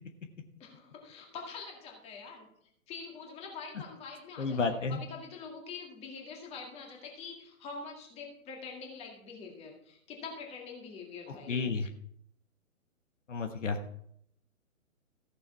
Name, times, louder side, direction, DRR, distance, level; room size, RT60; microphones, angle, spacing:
voice 1, 0.6-2.5 2.9-11.7, left 5 dB, 15° left, 0 dB, 2.0 m, -45 dB
voice 2, 4.4-5.0 11.5-11.9 13.3-13.8, left 4 dB, 60° left, 6 dB, 1.3 m, -31 dB
14.5 x 6.9 x 4.6 m, 0.70 s
figure-of-eight pair, 135°, 42 cm